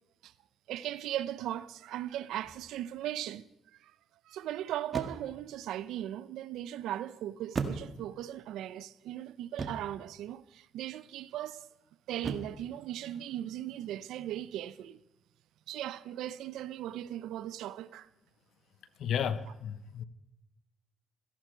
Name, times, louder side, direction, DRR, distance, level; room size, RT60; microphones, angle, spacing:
voice 1, 0.7-3.5 3.8-3.9 4.3-11.7 12.1-15.0 15.7-18.1, right 12 dB, 85° right, 0.6 m, -38 dB
sound 1, 2.4-2.8 4.9-5.5 7.5-8.3 9.6-10.0 12.2-12.7, right 4 dB, 35° right, 1.7 m, -37 dB
voice 2, 19.0-20.0, left 8 dB, 75° left, 0.9 m, -33 dB
17.0 x 14.0 x 4.6 m
cardioid pair, 90°, 0 cm